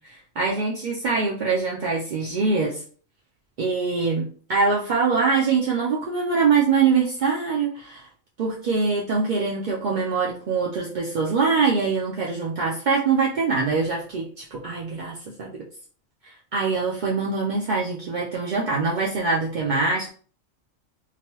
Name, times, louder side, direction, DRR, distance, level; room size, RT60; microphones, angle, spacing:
voice 1, 0.1-2.8 3.6-8.1 8.4-15.6 16.2-20.1, right 4 dB, 70° right, -3 dB, 0.4 m, -24 dB
2.9 x 2.2 x 2.9 m, 0.43 s
omnidirectional pair, 1.4 m